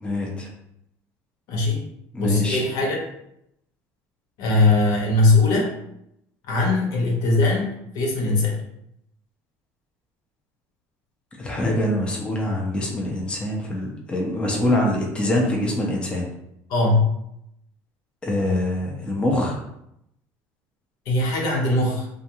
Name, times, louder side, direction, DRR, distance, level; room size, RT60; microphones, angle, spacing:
voice 1, 0.0-0.5 2.1-2.6 11.4-16.3 18.2-19.6, left 1 dB, 15° left, -1 dB, 0.6 m, -24 dB
voice 2, 1.5-1.8 2.2-3.0 4.4-5.7 6.5-8.6 16.7-17.1 21.1-22.1, left 2 dB, 65° left, -1 dB, 0.8 m, -20 dB
2.4 x 2.3 x 2.9 m, 0.78 s
supercardioid pair, 110°, 7 cm